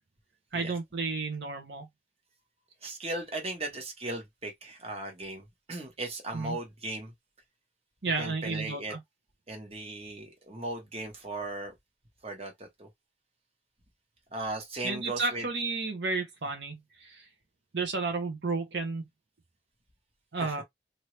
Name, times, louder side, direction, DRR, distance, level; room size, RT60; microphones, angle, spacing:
voice 1, 0.5-1.9 6.3-6.6 8.0-9.0 14.8-17.3 17.7-19.1 20.3-20.6, right 3 dB, 75° right, 0.9 m, -32 dB
voice 2, 2.8-7.1 8.0-9.0 9.5-11.7 12.2-12.9 14.3-15.5 20.4-20.6, right 2 dB, 35° right, 1.2 m, -37 dB
2.9 x 2.7 x 3.2 m
head